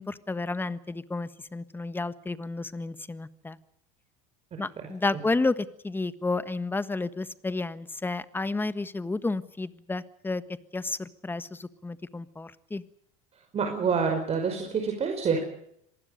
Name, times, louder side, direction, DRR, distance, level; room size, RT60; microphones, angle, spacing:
voice 1, 0.0-3.6 4.6-10.4 10.7-12.8, left 3 dB, 10° left, 14 dB, 1.4 m, -31 dB
voice 2, 13.5-15.4, right 5 dB, 35° right, 3 dB, 5.3 m, -27 dB
26.0 x 19.5 x 6.6 m, 0.72 s
supercardioid pair, 105°, 18 cm